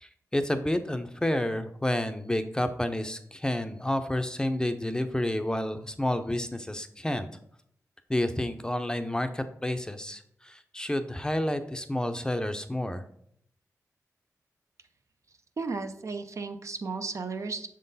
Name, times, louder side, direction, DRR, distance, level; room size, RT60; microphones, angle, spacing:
voice 1, 0.0-7.3 8.1-13.0, left 1 dB, 10° left, 8 dB, 0.5 m, -30 dB
voice 2, 15.6-17.7, right 4 dB, 55° right, 7 dB, 0.5 m, -34 dB
6.3 x 3.8 x 4.0 m, 0.67 s
cardioid pair, 60°, 6 cm